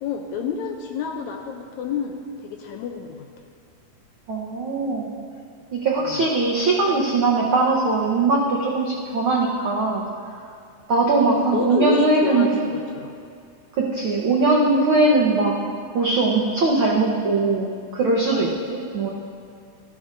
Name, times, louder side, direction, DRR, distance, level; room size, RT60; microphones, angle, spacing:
voice 1, 0.0-3.3 6.0-6.3 11.5-13.1, left 7 dB, 80° left, 3 dB, 1.8 m, -29 dB
voice 2, 4.3-5.1 5.7-10.0 10.9-12.5 13.8-15.5 15.9-19.1, right 3 dB, 75° right, -3 dB, 1.2 m, -20 dB
14.0 x 12.5 x 2.6 m, 2.4 s
omnidirectional pair, 3.7 m